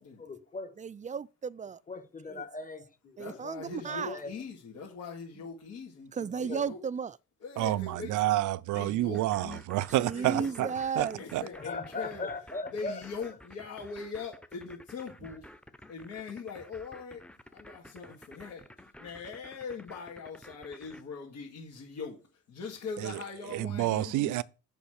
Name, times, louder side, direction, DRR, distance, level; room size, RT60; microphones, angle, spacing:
voice 1, 0.0-0.8 1.9-3.2 3.8-4.3 6.5-6.6 11.5-13.0, left 3 dB, 25° left, 1.6 m, -39 dB
voice 2, 0.8-1.8 2.3-2.4 3.2-4.2 6.1-7.2 10.0-11.2, right 6 dB, 25° right, 0.4 m, -34 dB
voice 3, 3.2-6.8 7.4-8.2 8.7-9.6 10.1-10.7 11.2-12.3 12.7-15.5 15.9-17.3 17.5-24.4, left 5 dB, 70° left, 2.3 m, -41 dB
voice 4, 7.6-10.7 11.0-11.4 23.0-23.1 23.5-24.4, right 15 dB, 80° right, 0.5 m, -29 dB
sound 1, 9.1-21.0, left 1 dB, 5° left, 0.8 m, -51 dB
7.0 x 5.2 x 6.5 m
cardioid pair, 90°, 30 cm